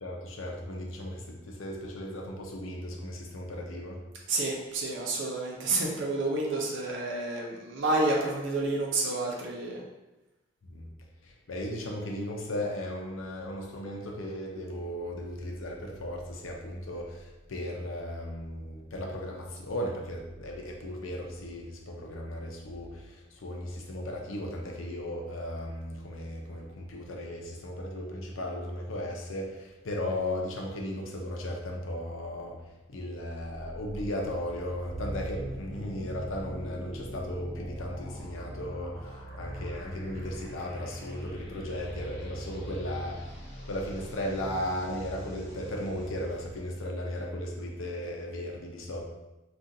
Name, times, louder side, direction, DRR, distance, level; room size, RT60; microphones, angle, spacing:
voice 1, 0.0-4.0 10.6-10.9 11.2-32.6 32.9-43.3 43.6-49.0, left 1 dB, 85° left, 0 dB, 0.6 m, -36 dB
voice 2, 4.3-9.8, right 2 dB, 70° right, -2 dB, 0.5 m, -29 dB
sound 1, 33.4-46.6, right 1 dB, 50° left, 0.9 m, -42 dB
3.7 x 2.4 x 2.7 m, 1.0 s
head